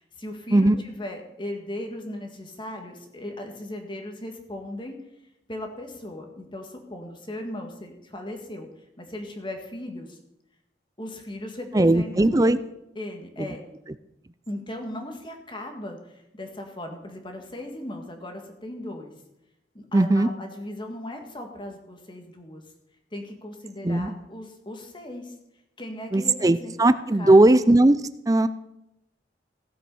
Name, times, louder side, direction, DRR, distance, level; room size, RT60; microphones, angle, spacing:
voice 1, 0.0-5.0 5.5-8.7 9.0-10.2 11.0-12.5 13.0-13.6 14.5-19.1 19.7-22.6 23.1-25.3 25.8-26.8 27.2-27.5, left 1 dB, 25° left, 4 dB, 1.8 m, -37 dB
voice 2, 11.7-12.6 13.4-13.5 19.9-20.3 23.8-24.1 26.1-28.0 28.3-28.5, right 2 dB, 20° right, 14 dB, 0.5 m, -18 dB
16.0 x 7.7 x 5.4 m, 0.86 s
head